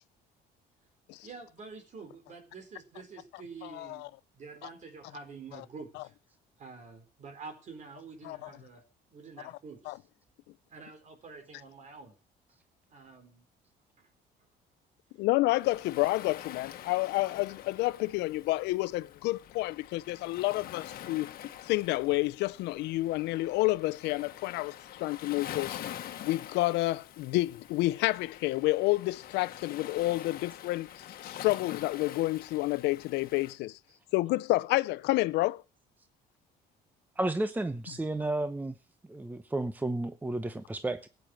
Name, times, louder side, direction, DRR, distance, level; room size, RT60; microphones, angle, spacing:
voice 1, 1.2-4.1 4.3-6.1 6.6-8.8 9.1-10.0 10.7-12.2 12.9-13.5 14.0-14.1 33.9-34.0, right 4 dB, 45° right, 4.5 m, -47 dB
voice 2, 3.6-4.1 5.5-5.6 6.0-6.1 8.2-8.5 9.9-10.0 15.2-21.3 21.6-25.8 26.2-30.9 31.2-33.8 34.1-35.6, left 19 dB, 85° left, 0.6 m, -29 dB
Waves surf, 15.6-33.6, left 11 dB, 60° left, 1.4 m, -46 dB
voice 3, 37.2-38.8 39.1-41.1, right 2 dB, 10° right, 0.8 m, -32 dB
15.5 x 9.1 x 6.4 m
cardioid pair, 110°, 17 cm